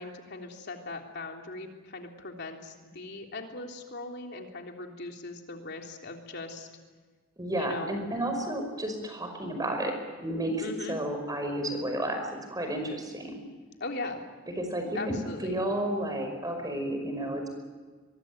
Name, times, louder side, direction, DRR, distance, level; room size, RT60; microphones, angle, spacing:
voice 1, 0.0-6.7 7.6-8.0 10.6-11.0 13.8-14.2 14.9-15.6, left 2 dB, 55° left, 2 dB, 3.5 m, -39 dB
voice 2, 7.4-9.9 10.2-13.4 14.6-17.5, right 1 dB, 20° right, 5 dB, 5.3 m, -32 dB
23.5 x 23.0 x 9.4 m, 1.4 s
head